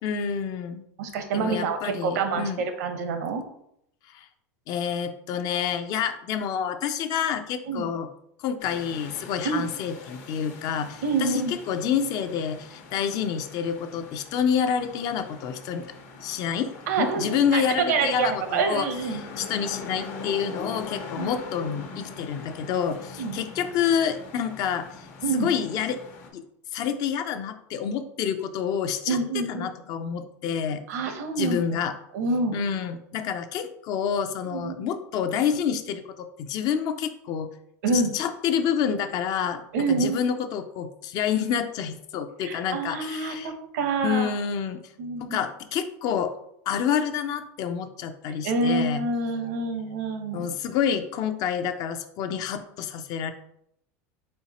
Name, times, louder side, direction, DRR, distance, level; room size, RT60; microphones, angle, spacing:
voice 1, 0.0-0.8 1.3-2.6 4.1-4.3 4.7-8.1 8.4-15.9 16.2-16.7 17.0-18.9 19.1-25.1 25.3-26.0 26.3-26.4 26.7-30.8 31.4-31.9 32.5-37.5 37.9-39.6 39.9-43.5 44.0-44.8 45.2-46.3 46.7-49.0 50.3-53.3, left 8 dB, 50° left, 9 dB, 0.5 m, -28 dB
voice 2, 1.0-3.4 7.7-7.9 9.4-9.6 11.0-11.5 16.9-19.2 20.6-20.7 21.1-21.3 23.2-23.4 25.2-25.5 29.1-29.7 30.9-31.8 32.1-32.6 34.5-34.7 37.8-38.1 39.7-40.2 42.4-44.3 45.0-45.4 48.4-50.5, right 4 dB, 80° right, 7 dB, 0.8 m, -27 dB
sound 1, 8.6-26.3, left 4 dB, 65° left, 1.0 m, -42 dB
4.3 x 4.0 x 2.9 m, 0.75 s
supercardioid pair, 120°, 9 cm